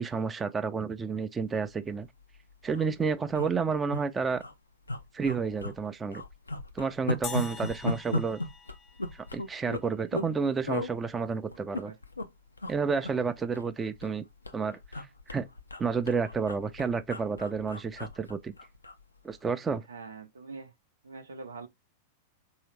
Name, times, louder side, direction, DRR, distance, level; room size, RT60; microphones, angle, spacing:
voice 1, 0.0-2.1 2.6-4.4 5.1-6.2 6.7-8.4 9.1-11.9 12.7-14.2 14.5-15.5 15.8-18.5 19.2-19.8, right 5 dB, 20° right, 0.4 m, -30 dB
sound 1, 1.9-2.1 2.3-2.4 2.6-2.9 3.3-4.0 4.4-4.5 4.9-5.8 6.1-10.3 10.7-10.9 11.5-12.3 12.6-12.8 13.0-14.2 14.4-19.0 19.3-19.5, left 1 dB, 90° left, 0.4 m, -36 dB
sound 2, 7.2-9.7, left 7 dB, 30° left, 0.6 m, -43 dB
voice 2, 11.5-12.0 19.9-20.7 21.0-21.7, right 4 dB, 80° right, 0.6 m, -44 dB
3.3 x 2.8 x 3.1 m
figure-of-eight pair, 95°, 0 cm